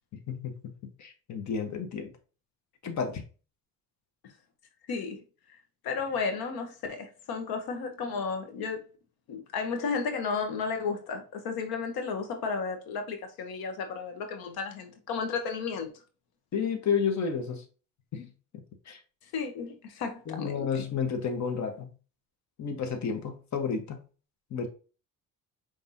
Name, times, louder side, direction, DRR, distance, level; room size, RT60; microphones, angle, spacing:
voice 1, 0.3-0.7 1.0-2.1 2.8-3.2 16.5-17.6 18.1-18.3 18.9-19.0 20.3-21.9 22.6-24.0 24.5-24.7, left 6 dB, 50° left, 1.1 m, -31 dB
voice 2, 4.9-5.2 5.5-5.6 5.8-8.8 9.3-15.9 19.3-20.8, left 5 dB, 85° left, 1.0 m, -33 dB
5.4 x 3.4 x 2.6 m
cardioid pair, 115°, 35 cm